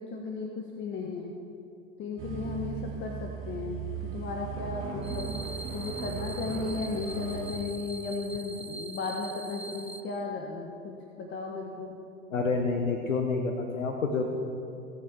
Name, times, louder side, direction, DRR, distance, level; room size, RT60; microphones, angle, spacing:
voice 1, 0.0-1.3 2.0-5.4 5.7-12.0, left 4 dB, 30° left, 1 dB, 1.2 m, -35 dB
sound 1, 2.2-7.5, right 6 dB, 35° right, 2.1 m, -37 dB
sound 2, 5.0-10.0, right 2 dB, 5° right, 0.3 m, -43 dB
voice 2, 12.3-14.3, left 4 dB, 80° left, 3 dB, 1.2 m, -28 dB
18.0 x 6.9 x 5.9 m, 2.7 s
hypercardioid pair, 95°, 38 cm